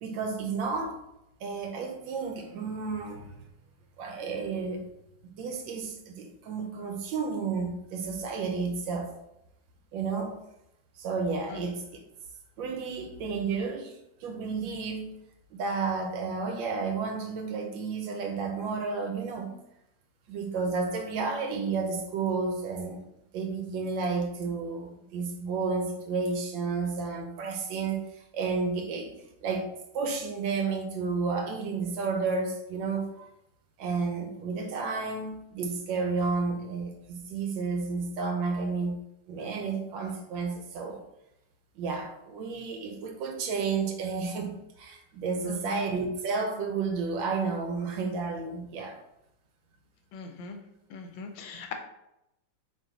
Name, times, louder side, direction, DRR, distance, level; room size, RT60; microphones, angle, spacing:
voice 1, 0.0-1.0 1.4-3.3 4.0-4.8 5.4-9.1 9.9-10.4 11.0-12.0 12.6-15.1 15.5-19.6 20.3-23.0 23.3-28.1 28.3-33.3 33.8-39.0 39.3-41.0 41.8-49.0, right 4 dB, 85° right, 4 dB, 1.4 m, -31 dB
voice 2, 45.5-45.8 50.1-50.6 50.9-51.7, left 4 dB, 90° left, 5 dB, 1.4 m, -40 dB
3.8 x 2.5 x 3.9 m, 0.86 s
omnidirectional pair, 2.1 m